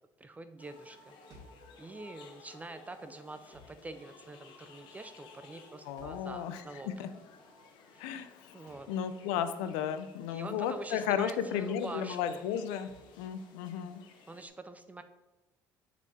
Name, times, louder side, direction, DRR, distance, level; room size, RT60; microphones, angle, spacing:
voice 1, 0.2-1.1 1.8-7.0 7.9-8.1 8.5-8.9 10.3-12.4 14.3-15.0, right 2 dB, 20° right, 9 dB, 0.4 m, -45 dB
sound 1, 0.6-14.5, left 4 dB, 70° left, 1.0 m, -56 dB
sound 2, 1.3-1.7 3.5-3.8 6.0-6.3 8.7-8.9 10.8-11.1 12.9-13.1, equal, 50° right, 2.1 m, -55 dB
voice 2, 5.8-6.6 7.0-7.1 8.0-8.6 8.9-12.9 13.2-14.0, left 9 dB, 90° left, 10 dB, 0.6 m, -34 dB
7.1 x 4.4 x 4.2 m, 1.1 s
supercardioid pair, 95°, 8 cm